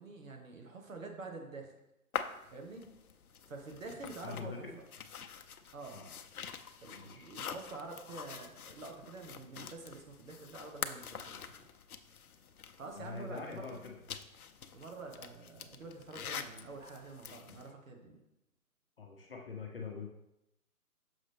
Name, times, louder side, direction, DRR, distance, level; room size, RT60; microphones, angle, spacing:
voice 1, 0.0-1.7 2.5-2.8 3.5-4.7 5.7-6.0 6.8-11.7 12.8-13.8 14.7-18.2, right 3 dB, 60° right, 3 dB, 1.5 m, -47 dB
sound 1, 2.1-17.7, left 7 dB, 70° left, 0.7 m, -46 dB
voice 2, 4.2-4.7 5.9-6.1 6.9-7.3 13.0-14.0 17.5-17.6 19.0-20.1, left 5 dB, 40° left, 1 dB, 0.8 m, -44 dB
6.5 x 5.5 x 3.4 m, 0.87 s
hypercardioid pair, 155°, 45 cm